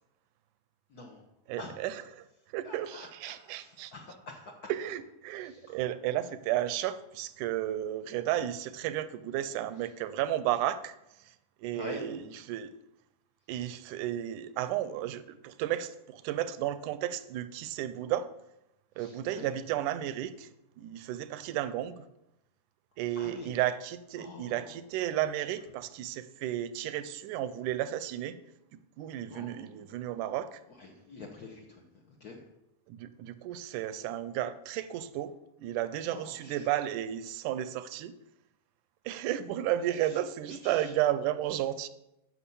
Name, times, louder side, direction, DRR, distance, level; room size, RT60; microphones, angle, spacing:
voice 1, 0.9-1.3 1.6-1.9 2.6-4.7 5.4-5.8 11.7-12.0 19.0-19.5 23.2-23.5 24.2-24.7 29.3-29.8 30.8-32.4 36.1-36.7 40.0-40.2 40.6-40.9, left 2 dB, 75° left, 0 dB, 0.8 m, -46 dB
voice 2, 1.5-2.3 2.5-3.9 4.7-12.2 12.5-12.7 13.5-18.3 19.0-20.5 20.8-22.0 23.0-28.4 29.0-30.6 32.9-35.3 35.6-38.1 39.1-41.9, right 12 dB, 80° right, 14 dB, 2.0 m, -33 dB
10.0 x 6.4 x 7.0 m, 0.89 s
omnidirectional pair, 3.7 m